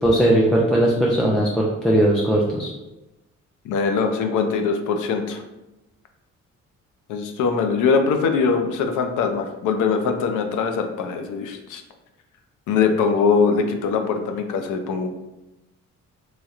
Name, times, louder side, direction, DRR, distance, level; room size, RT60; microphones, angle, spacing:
voice 1, 0.0-2.7, right 1 dB, ahead, -3 dB, 0.4 m, -18 dB
voice 2, 3.6-5.4 7.1-11.8 12.7-15.1, left 5 dB, 85° left, 5 dB, 0.5 m, -22 dB
3.0 x 2.8 x 2.4 m, 0.98 s
cardioid pair, 90°, 30 cm